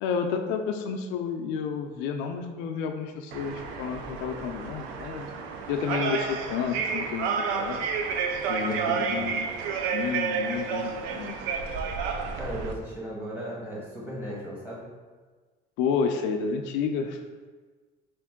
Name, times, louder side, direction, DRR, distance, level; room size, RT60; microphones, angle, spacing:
voice 1, 0.0-5.3 5.7-7.8 8.5-9.5 9.9-11.4 15.8-17.2, left 6 dB, 85° left, 5 dB, 0.4 m, -30 dB
sound 1, 3.3-12.7, right 5 dB, 85° right, 0.5 m, -30 dB
voice 2, 8.6-9.3 12.3-14.9, equal, 10° right, -7 dB, 1.2 m, -36 dB
4.4 x 2.5 x 3.6 m, 1.4 s
cardioid pair, 165°, 19 cm